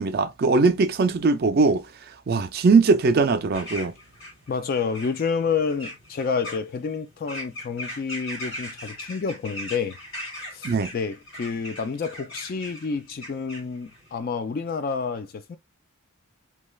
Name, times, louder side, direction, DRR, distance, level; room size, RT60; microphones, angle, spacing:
voice 1, 0.0-1.8 2.3-3.9 10.6-10.9, right 4 dB, 45° right, 0.4 m, -20 dB
sound 1, 3.5-14.2, left 1 dB, 65° left, 1.8 m, -40 dB
voice 2, 4.5-10.0 10.5-15.6, left 5 dB, 40° left, 0.3 m, -29 dB
3.1 x 2.3 x 2.3 m
head